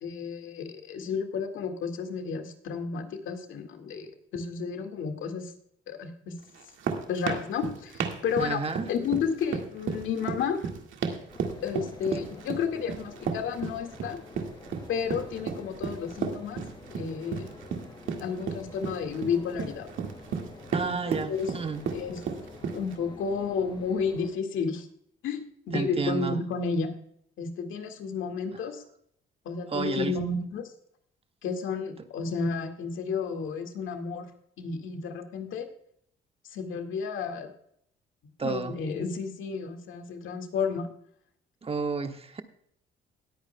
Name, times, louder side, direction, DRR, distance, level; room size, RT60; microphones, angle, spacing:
voice 1, 0.0-5.5 5.9-6.4 7.1-8.6 8.9-10.6 11.6-14.2 14.9-16.7 16.9-17.6 18.2-19.9 20.8-21.0 21.3-21.5 21.9-22.2 22.7-24.9 25.2-25.4 25.7-27.0 27.4-28.8 29.5-30.7 31.4-34.3 34.6-35.7 36.5-37.5 38.4-40.9, left 5 dB, 80° left, 6 dB, 2.0 m, -32 dB
sound 1, 6.5-23.0, right 6 dB, 80° right, 1.9 m, -33 dB
voice 2, 8.4-8.9 20.7-21.8 25.7-26.4 29.7-30.1 38.4-38.8 41.6-42.4, right 4 dB, 30° right, 7 dB, 1.1 m, -31 dB
sound 2, 11.3-24.3, left 2 dB, 20° left, 5.3 m, -48 dB
20.0 x 8.9 x 2.2 m, 0.68 s
cardioid pair, 90°, 20 cm